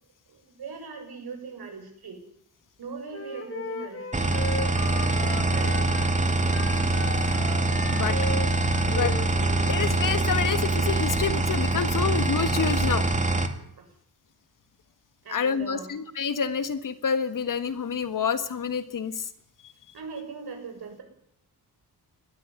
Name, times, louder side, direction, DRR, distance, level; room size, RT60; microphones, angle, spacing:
voice 1, 0.3-2.2 2.8-4.3 5.2-5.8 13.8-13.9 15.2-15.9 19.9-21.0, right 5 dB, 70° right, 4 dB, 7.2 m, -40 dB
Wind instrument woodwind instrument, 3.1-6.1 6.5-9.9, left 2 dB, 35° left, 3.3 m, -36 dB
sound 1, 4.1-13.5, right 2 dB, 20° right, 2.1 m, -24 dB
sound 2, 4.4-7.8 11.6-11.8, right 1 dB, ahead, 6.4 m, -46 dB
voice 2, 9.7-13.1 15.3-19.3, left 6 dB, 55° left, 11 dB, 1.7 m, -28 dB
20.0 x 13.5 x 9.6 m, 0.71 s
wide cardioid pair, 145°, 39 cm